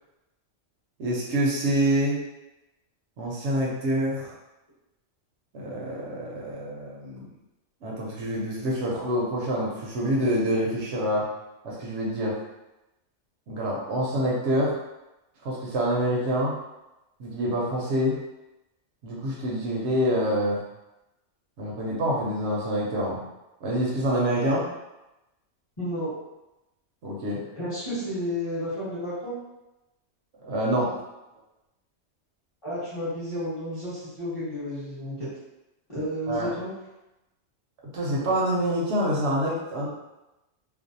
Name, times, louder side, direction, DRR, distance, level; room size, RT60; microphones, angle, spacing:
voice 1, 1.0-2.2 3.2-4.3 5.5-7.3 7.8-11.3 11.6-12.4 13.5-14.7 15.4-16.5 17.2-18.2 19.0-20.6 21.6-23.2 23.6-24.6 27.0-27.4 30.4-30.9 36.3-36.5 37.9-39.9, equal, 70° right, -4 dB, 0.9 m, -26 dB
voice 2, 25.8-26.1 27.6-29.3 32.6-35.3 35.9-36.7, equal, 30° left, -11 dB, 0.9 m, -31 dB
2.5 x 2.0 x 2.6 m, 0.96 s
omnidirectional pair, 1.3 m